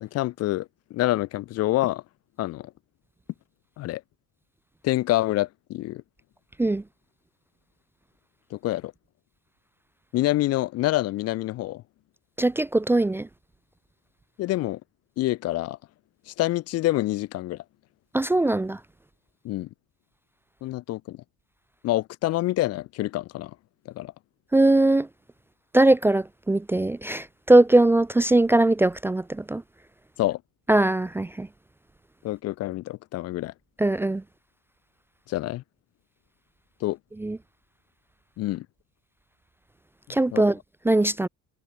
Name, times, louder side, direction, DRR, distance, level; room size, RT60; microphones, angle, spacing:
voice 1, 0.0-2.0 2.4-2.7 3.8-4.0 4.8-6.0 8.5-8.9 10.1-11.8 14.4-14.8 15.2-15.8 16.3-17.6 19.4-19.7 20.6-21.2 21.8-23.5 24.0-24.1 30.2-30.4 32.2-33.5 35.3-35.6 36.8-37.0 38.4-38.7 40.3-40.4, left 16 dB, 50° left, 0.8 m, -27 dB
voice 2, 12.4-13.3 18.1-18.8 24.5-25.1 25.7-29.6 30.7-31.5 33.8-34.2 37.2-37.4 40.1-40.6 40.8-41.3, right 2 dB, 5° right, 0.6 m, -20 dB
cardioid pair, 170°, 33 cm